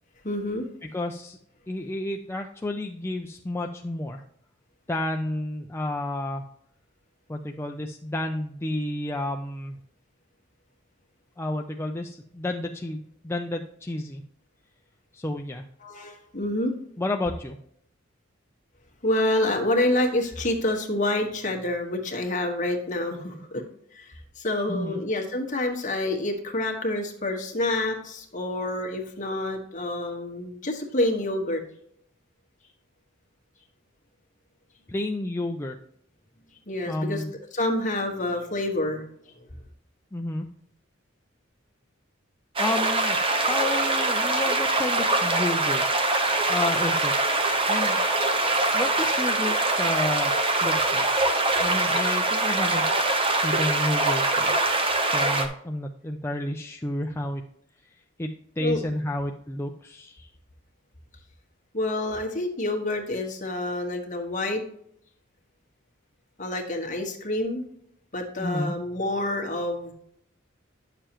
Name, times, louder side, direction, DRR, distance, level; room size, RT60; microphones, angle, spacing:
voice 1, 0.2-0.7 15.8-16.7 19.0-23.6 23.9-31.6 36.7-37.2 37.5-39.0 58.6-58.8 61.7-64.6 66.4-67.6 68.1-69.9, left 1 dB, 40° left, 2 dB, 1.5 m, -27 dB
voice 2, 0.8-1.4 1.7-4.2 4.9-6.4 7.3-9.8 11.4-14.2 15.1-15.6 17.0-17.6 24.7-25.0 34.9-35.8 36.9-37.3 40.1-40.5 42.6-43.2 43.5-45.8 46.5-47.1 47.7-48.0 48.7-50.3 50.6-51.1 51.6-54.5 55.0-57.4 58.2-58.3 58.6-60.3 68.4-68.7, left 1 dB, 10° left, 3 dB, 0.4 m, -31 dB
sound 1, 42.6-55.5, right 2 dB, 25° right, 0.9 m, -23 dB
10.0 x 6.7 x 3.0 m, 0.71 s
head